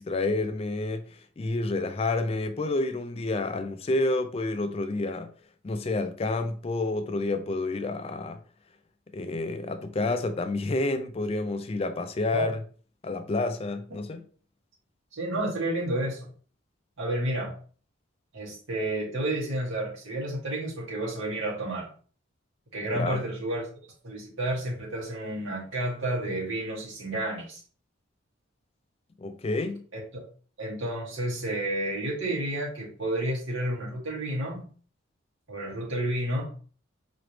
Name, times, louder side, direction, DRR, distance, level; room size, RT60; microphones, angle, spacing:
voice 1, 0.0-5.3 5.6-8.4 9.1-12.6 13.0-14.3 22.9-23.2 29.2-29.8, left 2 dB, 30° left, 0.3 m, -29 dB
voice 2, 15.1-16.3 17.0-17.5 18.3-21.9 22.7-23.6 24.0-27.6 29.9-30.2 30.6-34.6 35.5-36.5, right 1 dB, 80° right, 2.0 m, -31 dB
4.9 x 3.0 x 3.1 m
head